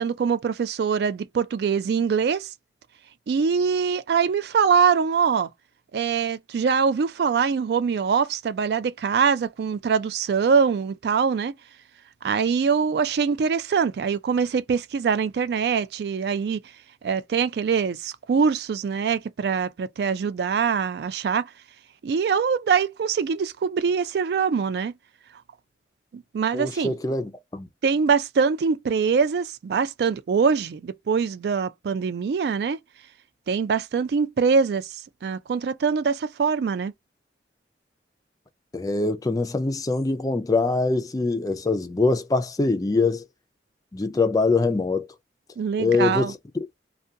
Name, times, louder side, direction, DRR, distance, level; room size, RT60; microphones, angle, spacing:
voice 1, 0.0-2.5 3.3-5.5 5.9-11.5 12.2-16.6 17.0-21.5 22.0-24.9 26.1-26.9 27.8-32.8 33.5-34.9 35.2-36.9 45.6-46.3, right 6 dB, 65° right, 0.3 m, -23 dB
voice 2, 26.5-27.7 38.7-43.2 43.9-45.1 45.8-46.2, left 3 dB, 20° left, 0.3 m, -23 dB
2.4 x 2.2 x 2.6 m
head